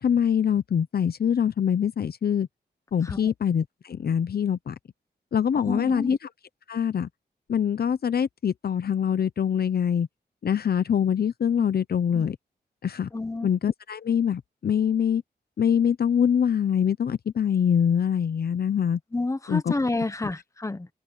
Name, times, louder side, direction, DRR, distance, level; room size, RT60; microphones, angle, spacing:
voice 1, 0.0-2.5 2.9-4.8 5.3-6.3 6.7-7.1 7.5-10.1 10.4-12.4 12.8-13.1 13.4-15.2 15.6-19.0 19.5-19.7, left 8 dB, 65° left, 0.7 m, -24 dB
voice 2, 5.5-6.2 11.6-11.7 13.1-13.5 19.1-20.9, left 2 dB, 20° left, 1.2 m, -29 dB
wide cardioid pair, 105°, 17 cm